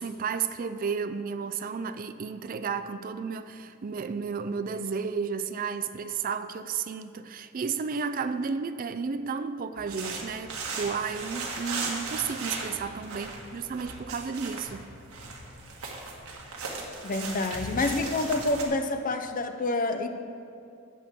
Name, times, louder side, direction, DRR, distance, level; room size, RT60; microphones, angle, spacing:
voice 1, 0.0-14.9, right 5 dB, 40° right, 11 dB, 0.4 m, -32 dB
sound 1, 9.8-18.6, right 3 dB, 85° right, 1.5 m, -37 dB
voice 2, 17.0-20.1, left 2 dB, 40° left, 8 dB, 0.6 m, -28 dB
13.0 x 8.4 x 3.6 m, 2.5 s
head